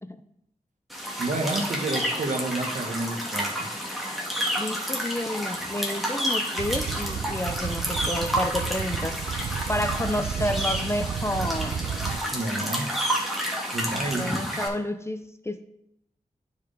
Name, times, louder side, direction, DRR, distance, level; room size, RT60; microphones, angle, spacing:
sound 1, 0.9-14.7, equal, ahead, 2.1 m, -30 dB
voice 1, 1.2-3.7 12.3-12.9 13.7-14.4, right 2 dB, 60° right, 3 dB, 1.6 m, -29 dB
voice 2, 4.6-9.2 9.7-11.8 14.1-15.6, left 1 dB, 20° left, 9 dB, 0.6 m, -30 dB
sound 2, 6.6-12.2, right 7 dB, 85° right, 0.5 m, -32 dB
11.0 x 4.9 x 3.5 m, 0.79 s
cardioid pair, 50°, 14 cm